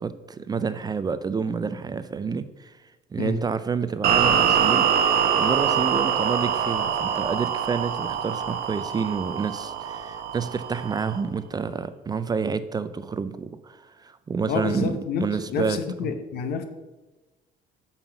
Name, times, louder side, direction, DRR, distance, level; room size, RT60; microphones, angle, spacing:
voice 1, 0.0-2.8 3.1-16.1, right 5 dB, 25° right, 12 dB, 0.3 m, -29 dB
sound 1, 4.0-11.2, right 8 dB, 65° right, 0.8 m, -24 dB
voice 2, 14.5-16.6, left 6 dB, 70° left, 8 dB, 0.8 m, -29 dB
5.7 x 5.4 x 5.7 m, 1.2 s
cardioid pair, 110°, 17 cm